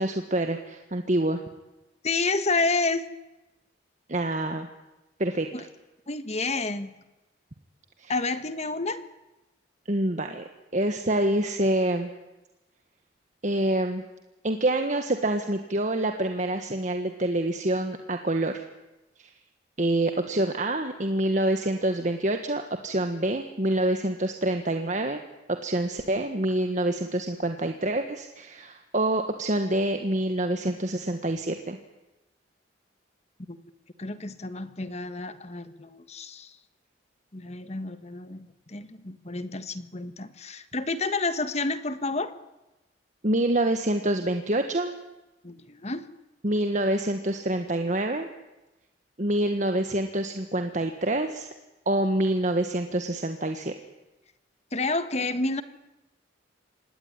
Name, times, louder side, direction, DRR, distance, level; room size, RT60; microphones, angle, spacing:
voice 1, 0.0-1.4 4.1-4.7 5.2-5.5 8.0-8.1 9.9-10.4 10.7-12.1 13.4-14.0 14.4-18.6 19.2-19.3 19.8-25.2 25.6-31.8 43.2-45.0 46.4-48.3 49.2-51.5 51.9-53.7, right 1 dB, 40° right, 6 dB, 1.5 m, -26 dB
voice 2, 2.0-3.0 5.5-5.6 6.1-6.9 8.1-9.0 33.5-33.6 34.0-36.5 37.3-42.3 45.4-46.1 54.7-55.6, left 3 dB, 35° left, 12 dB, 1.4 m, -29 dB
26.5 x 19.0 x 9.8 m, 1.0 s
head